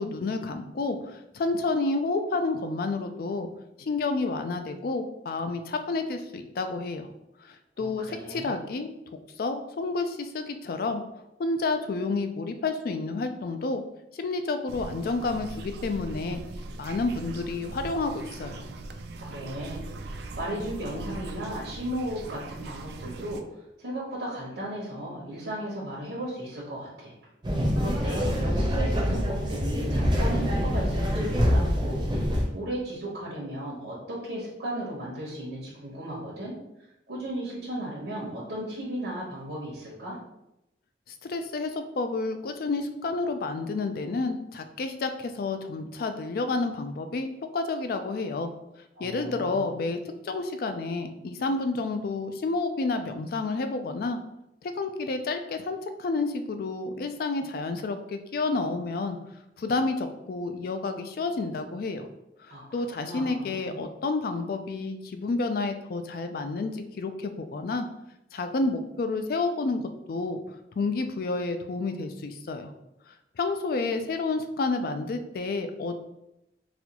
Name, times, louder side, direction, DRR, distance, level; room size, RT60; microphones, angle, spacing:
voice 1, 0.0-3.5 3.8-7.1 7.4-8.9 9.4-11.0 11.4-13.8 14.2-16.4 16.8-18.6 41.2-48.5 49.0-54.2 54.6-59.2 59.6-62.1 62.4-67.9 68.3-72.7 73.4-76.0, left 3 dB, 55° left, 7 dB, 0.3 m, -30 dB
voice 2, 7.8-8.6 19.2-23.4 23.8-27.1 27.8-36.5 37.1-40.2 49.0-49.7 62.5-63.7, right 1 dB, 90° right, -6 dB, 1.0 m, -35 dB
sound 1, 14.7-23.4, right 2 dB, 65° right, 0.3 m, -40 dB
sound 2, 27.4-32.4, equal, 25° right, 0.6 m, -25 dB
4.1 x 2.3 x 2.9 m, 0.87 s
head